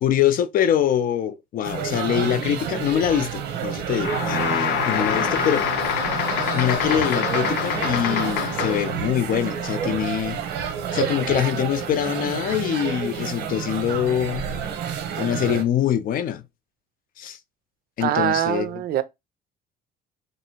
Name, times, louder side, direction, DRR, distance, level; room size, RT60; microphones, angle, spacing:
voice 1, 0.0-5.7 6.5-10.4 10.9-14.5 15.2-16.4 17.2-17.4 18.0-18.7, left 10 dB, 55° left, 0.5 m, -24 dB
sound 1, 1.6-15.6, right 8 dB, 85° right, 0.9 m, -29 dB
sound 2, 4.0-9.0, left 7 dB, 85° left, 0.8 m, -25 dB
voice 2, 18.0-19.0, right 11 dB, 65° right, 0.6 m, -24 dB
3.2 x 2.6 x 4.4 m
cardioid pair, 110°, 17 cm